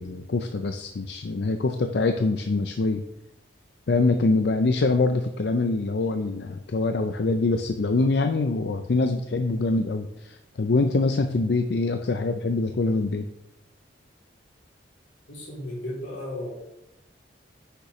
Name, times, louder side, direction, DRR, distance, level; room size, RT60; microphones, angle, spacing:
voice 1, 0.0-3.0 3.9-13.3, left 3 dB, 65° left, 6 dB, 0.5 m, -24 dB
voice 2, 15.3-16.5, left 1 dB, 85° left, -4 dB, 3.1 m, -34 dB
9.7 x 6.7 x 3.1 m, 0.89 s
head